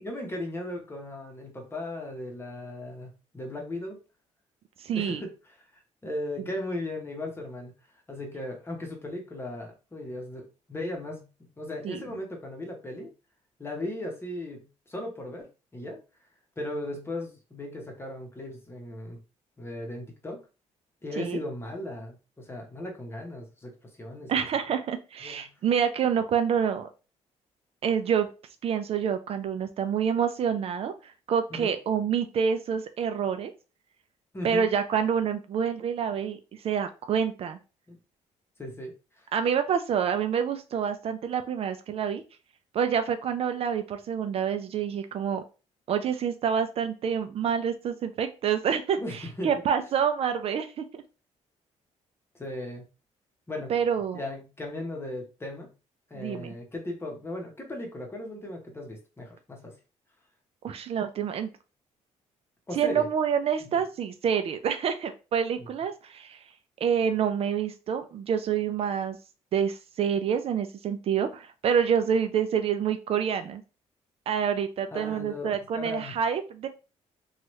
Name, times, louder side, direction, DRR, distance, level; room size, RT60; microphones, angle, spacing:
voice 1, 0.0-4.0 4.9-5.3 5.7-7.7 8.1-11.3 11.6-13.1 13.6-16.0 16.6-19.2 19.6-20.4 21.0-23.7 24.0-24.4 25.2-25.5 31.5-31.7 34.3-34.7 37.9-38.0 38.6-39.3 49.0-49.5 52.4-52.9 53.5-53.8 54.1-55.7 56.1-59.7 62.7-63.1 63.6-63.8 65.6-65.7 74.9-76.1, left 1 dB, 20° left, 2 dB, 0.9 m, -37 dB
voice 2, 4.8-5.2 11.8-12.0 21.2-21.4 24.3-26.9 27.8-28.3 28.6-33.5 34.4-36.4 36.6-37.6 39.3-42.2 42.7-45.4 45.9-51.0 53.7-54.2 56.1-56.5 60.6-61.5 62.7-66.4 66.8-69.2 69.5-73.6 74.3-76.7, right 7 dB, 50° right, 8 dB, 0.4 m, -27 dB
2.9 x 2.3 x 3.1 m, 0.32 s
cardioid pair, 105°, 12 cm